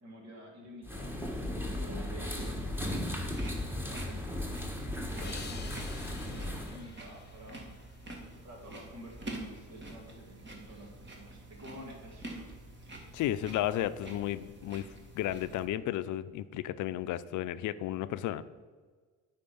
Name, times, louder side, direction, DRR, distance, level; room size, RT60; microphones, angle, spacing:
voice 1, 0.0-2.8 3.9-4.3 5.1-5.8 6.2-7.7 8.4-12.2, equal, 60° right, 1 dB, 2.4 m, -49 dB
sound 1, 0.8-6.8, left 1 dB, 5° right, 1.5 m, -36 dB
sound 2, 2.5-15.7, right 2 dB, 35° right, 2.0 m, -47 dB
sound 3, 5.2-8.5, left 6 dB, 35° left, 0.8 m, -50 dB
voice 2, 13.1-14.9 15.1-18.4, left 13 dB, 80° left, 14 dB, 0.5 m, -33 dB
9.1 x 4.3 x 7.0 m, 1.5 s
cardioid pair, 90°, 30 cm